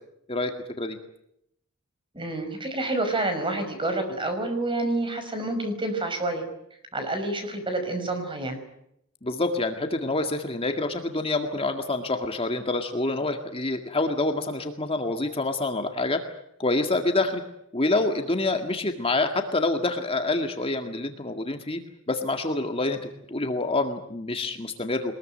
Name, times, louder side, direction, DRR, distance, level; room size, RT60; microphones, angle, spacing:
voice 1, 2.1-6.4 6.9-8.6, right 2 dB, 25° right, 7 dB, 5.7 m, -28 dB
voice 2, 9.2-16.2 16.6-17.4 17.7-21.8 22.1-25.1, left 2 dB, 25° left, 5 dB, 2.0 m, -27 dB
23.0 x 21.0 x 9.2 m, 0.76 s
head